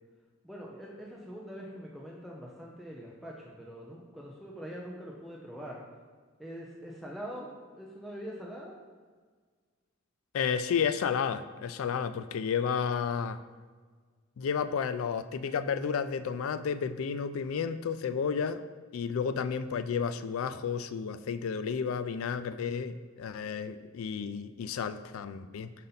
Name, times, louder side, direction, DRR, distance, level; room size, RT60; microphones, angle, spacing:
voice 1, 0.4-5.8 6.4-8.8, equal, ahead, -4 dB, 0.5 m, -43 dB
voice 2, 10.3-13.4 14.4-18.6 18.9-25.7, left 6 dB, 90° left, 12 dB, 0.3 m, -32 dB
5.6 x 5.2 x 3.9 m, 1.5 s
head